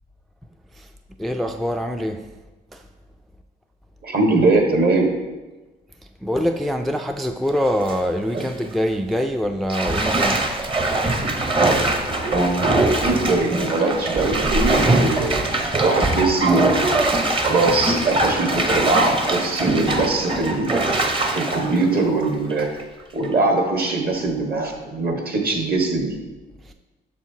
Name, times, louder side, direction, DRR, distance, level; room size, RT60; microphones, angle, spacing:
voice 1, 1.2-2.2 2.7-2.8 6.2-10.4 26.6-26.7, equal, ahead, 5 dB, 0.3 m, -24 dB
voice 2, 4.0-5.1 8.3-8.5 12.3-12.6 13.0-16.9 17.4-20.8 21.3-22.7 23.1-26.2, right 2 dB, 50° right, 2 dB, 1.4 m, -21 dB
Bathtub (filling or washing), 7.5-7.9 8.4-8.5 9.7-22.8 23.2-23.3, right 2 dB, 25° right, 0.8 m, -22 dB
7.4 x 6.3 x 2.8 m, 1.2 s
cardioid pair, 90°, 20 cm